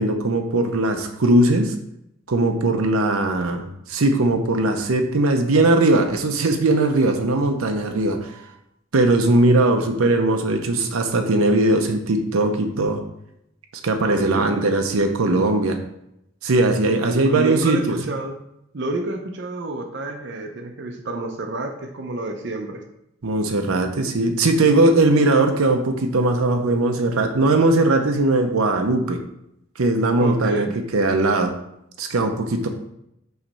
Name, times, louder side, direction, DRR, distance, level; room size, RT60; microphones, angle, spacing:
voice 1, 0.0-1.7 2.3-8.4 8.9-13.0 13.8-15.8 16.4-18.1 23.2-29.2 29.8-30.7 30.9-31.5 32.0-32.7, right 2 dB, 85° right, 5 dB, 0.7 m, -19 dB
voice 2, 14.0-14.5 17.0-18.4 18.7-22.8 30.2-30.7, right 2 dB, 55° right, 3 dB, 0.6 m, -29 dB
5.7 x 3.2 x 5.3 m, 0.80 s
head